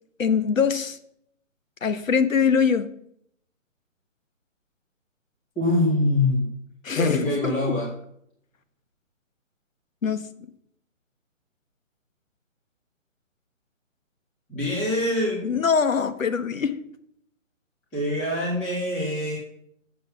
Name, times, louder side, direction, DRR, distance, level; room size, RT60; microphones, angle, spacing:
voice 1, 0.2-1.0 1.8-2.9 6.8-7.5 10.0-10.3 15.4-16.8, left 6 dB, 80° left, 12 dB, 1.2 m, -23 dB
voice 2, 5.5-6.5 7.0-7.9 14.5-15.6 17.9-19.4, left 1 dB, 5° left, -6 dB, 0.9 m, -24 dB
7.8 x 6.8 x 6.8 m, 0.71 s
hypercardioid pair, 170°, 39 cm